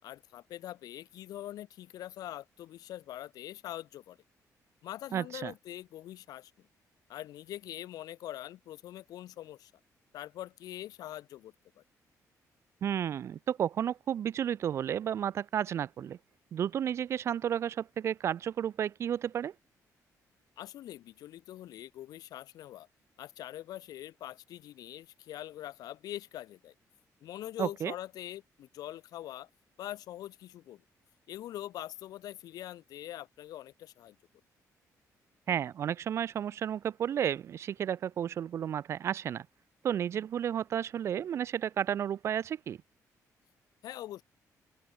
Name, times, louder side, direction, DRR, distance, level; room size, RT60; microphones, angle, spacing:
voice 1, 0.0-4.2 4.8-6.5 7.1-9.7 10.1-11.8 20.6-22.9 23.2-26.7 27.2-29.5 29.8-30.8 31.3-34.2 43.8-44.2, left 13 dB, 85° left, 6.6 m, -43 dB
voice 2, 5.1-5.5 12.8-16.2 16.5-19.5 27.6-27.9 35.5-39.5 39.8-42.8, right 9 dB, 45° right, 0.5 m, -32 dB
open air
cardioid pair, 180°, 6 cm